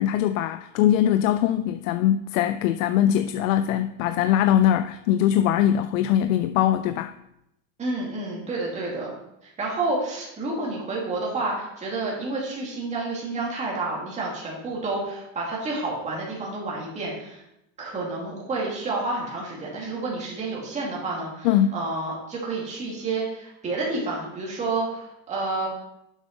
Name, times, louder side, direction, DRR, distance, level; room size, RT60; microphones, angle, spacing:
voice 1, 0.0-7.1 21.4-21.8, left 11 dB, 80° left, 0.5 m, -21 dB
voice 2, 7.8-9.1 9.4-17.4 17.8-25.7, right 3 dB, 20° right, 2.2 m, -29 dB
7.3 x 5.3 x 5.2 m
supercardioid pair, 155°, 39 cm